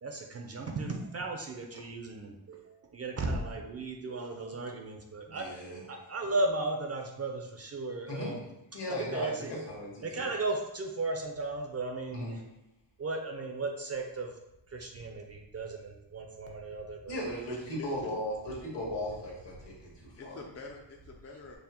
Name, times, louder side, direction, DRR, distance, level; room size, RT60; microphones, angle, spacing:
voice 1, 0.0-8.4 9.1-9.5 10.0-12.4 13.0-14.3 14.7-17.2, right 2 dB, 35° right, 2 dB, 0.4 m, -35 dB
voice 2, 5.3-5.8 8.1-8.3 8.7-10.2 12.1-12.3 17.1-20.4, left 1 dB, 65° left, -3 dB, 1.4 m, -37 dB
voice 3, 17.5-18.1 20.2-21.6, left 2 dB, 35° left, 0 dB, 0.4 m, -45 dB
5.4 x 2.0 x 2.8 m, 0.88 s
wide cardioid pair, 115°, 45 cm